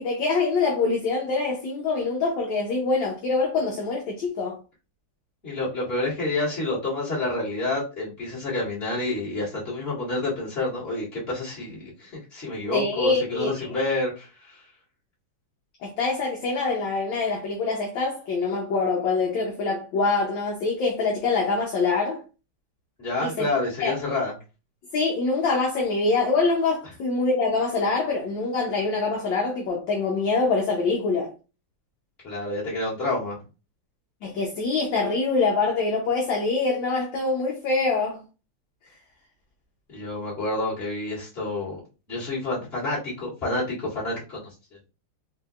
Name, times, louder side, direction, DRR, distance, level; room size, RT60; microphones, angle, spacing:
voice 1, 0.0-4.6 12.7-13.7 15.8-22.2 23.2-23.5 23.8-23.9 24.9-31.3 34.2-38.2, left 3 dB, 65° left, 1.4 m, -25 dB
voice 2, 5.4-14.7 23.0-24.3 32.2-33.4 39.9-41.8 42.1-44.5, left 2 dB, 25° left, 2.4 m, -28 dB
4.4 x 2.8 x 2.4 m
omnidirectional pair, 2.4 m